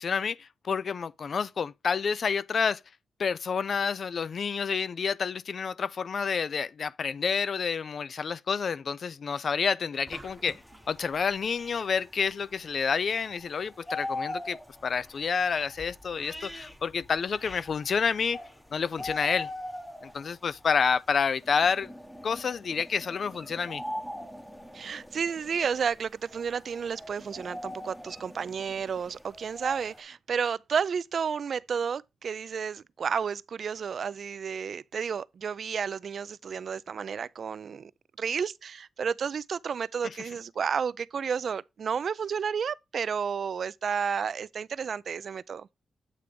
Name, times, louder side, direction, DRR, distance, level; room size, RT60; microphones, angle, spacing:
voice 1, 0.0-2.8 3.2-10.6 10.9-18.4 18.7-19.5 20.0-21.9 22.2-23.8, left 6 dB, 55° left, 0.3 m, -29 dB
sound 1, 10.1-30.0, left 1 dB, 10° left, 0.9 m, -42 dB
sound 2, 10.1-10.9, right 2 dB, 20° right, 0.9 m, -47 dB
voice 2, 24.7-37.9 38.2-45.7, right 6 dB, 60° right, 0.4 m, -31 dB
8.4 x 3.3 x 5.1 m
cardioid pair, 90°, 0 cm